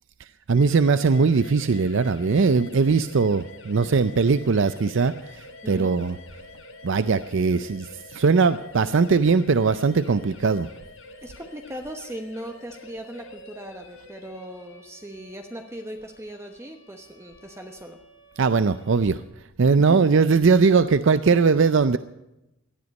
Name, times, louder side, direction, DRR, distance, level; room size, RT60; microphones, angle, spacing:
voice 1, 0.2-6.2 6.8-10.7 18.4-19.2 19.6-22.0, right 4 dB, 65° right, 0.5 m, -20 dB
sound 1, 0.5-19.2, left 2 dB, 75° left, 5.9 m, -47 dB
voice 2, 5.6-5.9 11.2-18.0 19.8-20.1, right 1 dB, 15° right, 1.0 m, -38 dB
18.5 x 12.5 x 5.3 m
head